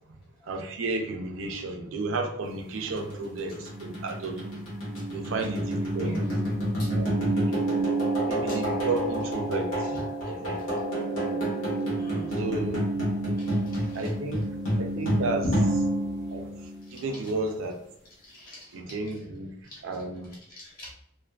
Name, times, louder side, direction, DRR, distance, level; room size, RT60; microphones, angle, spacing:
voice 1, 0.5-4.6 5.1-6.5 6.9-7.8 8.3-10.0 10.3-10.6 11.1-11.5 12.4-12.9 13.5-14.4 14.8-15.4 16.3-16.5 16.9-17.8 18.7-19.5 19.8-20.3, right 3 dB, 75° right, 3 dB, 0.5 m, -33 dB
sound 1, 3.0-17.2, right 1 dB, 85° left, 1.1 m, -29 dB
voice 2, 12.0-12.4 13.4-14.0 15.4-15.5 16.9-17.0 18.2-18.7 19.7-19.8 20.5-20.9, equal, 45° left, -5 dB, 1.0 m, -37 dB
2.5 x 2.3 x 2.3 m, 0.74 s
head